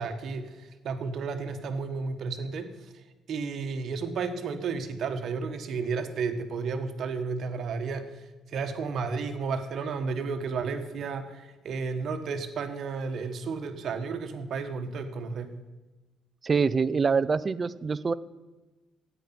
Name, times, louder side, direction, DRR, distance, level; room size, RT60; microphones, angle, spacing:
voice 1, 0.0-3.0 3.3-15.5, right 5 dB, 55° right, 7 dB, 1.4 m, -32 dB
voice 2, 16.4-18.1, right 5 dB, 25° right, 15 dB, 0.4 m, -25 dB
13.0 x 9.4 x 5.9 m, 1.2 s
cardioid pair, 145°, 0 cm